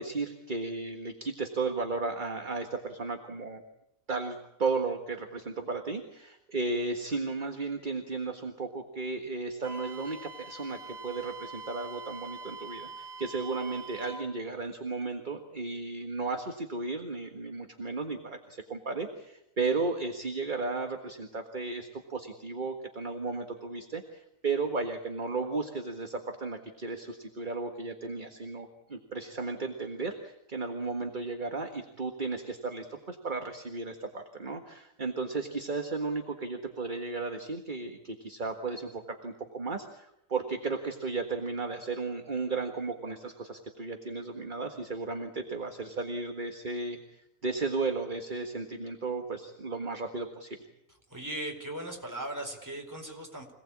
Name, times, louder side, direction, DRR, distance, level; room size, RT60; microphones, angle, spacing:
voice 1, 0.0-3.6 4.1-50.6, right 3 dB, 35° right, 4 dB, 1.8 m, -34 dB
Wind instrument woodwind instrument, 9.6-14.3, right 2 dB, 90° right, 2.0 m, -44 dB
voice 2, 51.1-53.5, right 1 dB, 15° right, 2 dB, 4.4 m, -38 dB
26.5 x 18.5 x 8.6 m, 0.81 s
omnidirectional pair, 1.4 m